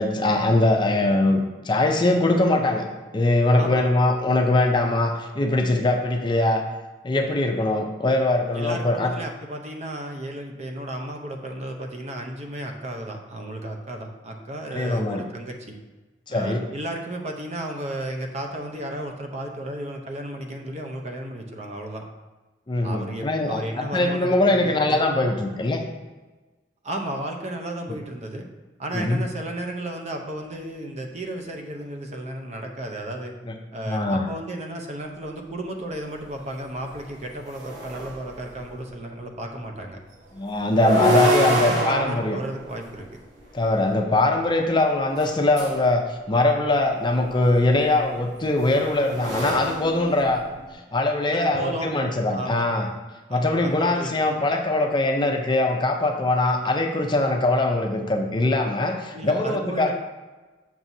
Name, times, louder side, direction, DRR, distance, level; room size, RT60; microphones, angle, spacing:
voice 1, 0.0-2.9 3.1-6.6 7.0-9.1 14.7-15.2 16.3-16.6 22.7-25.8 27.9-28.0 28.9-29.2 33.5-33.6 33.9-34.3 40.3-42.4 43.5-50.5 50.9-52.9 53.3-59.9, left 2 dB, 25° left, 4 dB, 0.5 m, -22 dB
voice 2, 3.6-3.9 8.5-15.8 16.3-22.0 22.8-25.0 26.8-28.5 28.8-33.3 33.7-40.0 41.1-43.1 51.3-51.9 52.3-52.7 53.3-54.4 59.1-59.9, right 1 dB, 40° right, 3 dB, 0.8 m, -33 dB
sound 1, 36.2-36.3 36.8-38.7 40.6-43.8 45.1-45.9 47.3-50.7, right 1 dB, 85° right, 1.7 m, -27 dB
7.4 x 6.0 x 2.7 m, 1.2 s
head